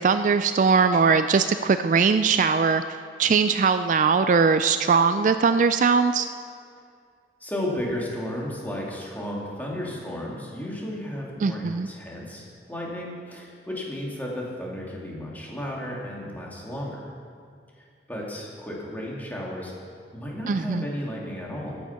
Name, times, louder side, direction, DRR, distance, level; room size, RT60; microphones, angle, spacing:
voice 1, 0.0-2.8 3.2-6.3 11.4-11.9 20.5-20.8, right 5 dB, 45° right, 10 dB, 0.3 m, -20 dB
voice 2, 7.4-17.1 18.1-19.7 20.1-21.8, left 1 dB, 10° left, -4 dB, 2.4 m, -33 dB
14.0 x 9.0 x 5.8 m, 2.2 s
head